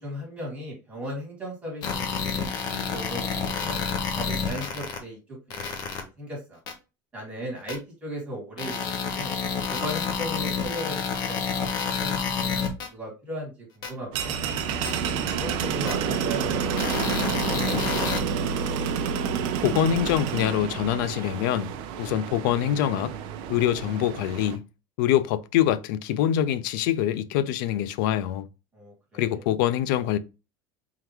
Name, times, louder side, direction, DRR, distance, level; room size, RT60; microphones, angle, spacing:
voice 1, 0.0-3.8 4.1-5.2 5.5-6.6 7.1-9.3 9.7-14.4 14.8-18.0 18.3-18.4 28.7-29.4, equal, 10° right, 2.2 m, -37 dB
sound 1, 1.8-5.0 5.5-6.0 6.7-6.8 7.7-7.8 8.6-12.9 13.8-13.9 14.8-14.9 15.9-16.0 16.8-18.2, left 6 dB, 40° left, 0.9 m, -29 dB
sound 2, 14.1-24.6, right 7 dB, 55° right, 0.6 m, -29 dB
voice 2, 19.6-21.7 22.0-23.1 23.5-24.6 25.0-28.5 29.2-30.2, left 11 dB, 80° left, 0.5 m, -24 dB
3.7 x 3.4 x 3.0 m
cardioid pair, 165°, 11 cm